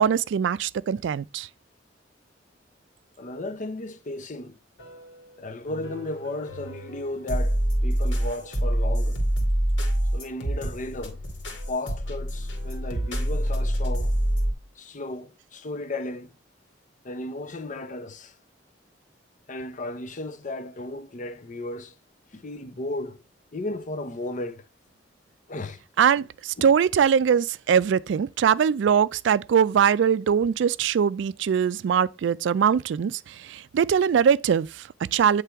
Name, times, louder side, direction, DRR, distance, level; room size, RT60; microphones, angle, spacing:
voice 1, 0.0-1.5 26.0-35.4, right 7 dB, 70° right, 0.3 m, -22 dB
voice 2, 3.2-4.6 5.4-9.2 10.1-11.2 11.7-14.1 14.8-16.3 17.0-18.3 19.5-21.9 22.3-23.2 23.5-24.6 25.5-25.8 26.6-26.7, left 2 dB, 45° left, 0.6 m, -34 dB
sound 1, 4.8-5.3 5.7-14.5, equal, 85° left, 2.0 m, -27 dB
8.4 x 3.3 x 4.5 m
head